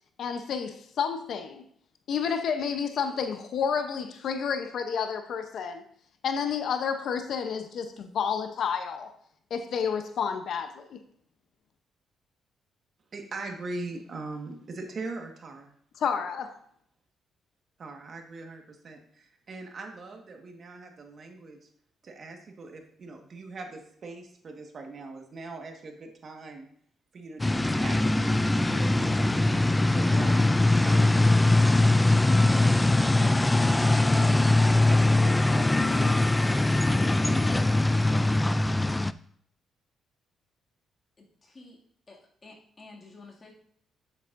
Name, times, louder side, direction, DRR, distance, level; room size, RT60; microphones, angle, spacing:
voice 1, 0.2-1.6 2.1-5.8 6.2-9.1 9.5-11.0 16.0-16.5, left 6 dB, 65° left, 0.8 m, -30 dB
voice 2, 13.1-15.7 17.8-21.7 22.0-26.7 27.1-34.4 34.9-38.4, right 3 dB, 50° right, 1.6 m, -42 dB
sound 1, 27.4-39.1, left 2 dB, 15° left, 0.3 m, -22 dB
voice 3, 41.4-41.8 42.1-43.5, left 3 dB, 30° left, 2.3 m, -50 dB
9.2 x 8.2 x 2.6 m
cardioid pair, 90°, 0 cm